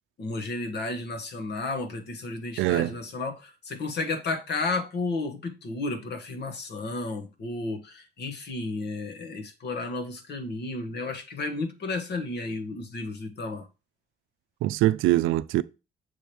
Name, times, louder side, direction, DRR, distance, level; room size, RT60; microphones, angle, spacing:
voice 1, 0.2-13.7, left 3 dB, 60° left, 1.5 m, -32 dB
voice 2, 2.6-2.9 14.6-15.6, right 15 dB, 90° right, 0.4 m, -23 dB
7.1 x 3.4 x 4.4 m
cardioid pair, 90°, 20 cm